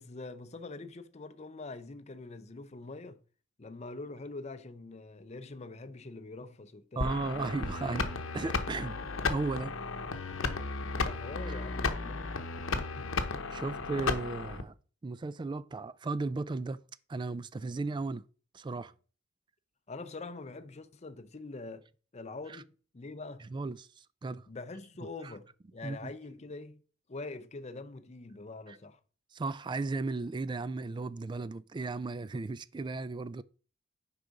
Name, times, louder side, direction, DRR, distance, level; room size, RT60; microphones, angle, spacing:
voice 1, 0.0-3.2 3.6-7.4 7.8-7.9 11.0-12.3 12.9-13.2 19.9-21.9 22.1-23.5 24.5-26.8 27.1-29.0, left 3 dB, 35° left, 0.6 m, -44 dB
sound 1, 7.0-14.6, left 4 dB, 85° left, 0.8 m, -34 dB
voice 2, 7.0-8.1 8.3-9.0 9.3-9.7 11.5-11.6 13.5-14.7 15.0-16.8 17.1-18.2 18.5-18.9 22.5-22.6 23.5-24.5 25.2-25.3 25.8-26.1 28.7-28.8 29.3-33.4, right 3 dB, 25° right, 0.3 m, -35 dB
6.6 x 4.8 x 5.1 m
head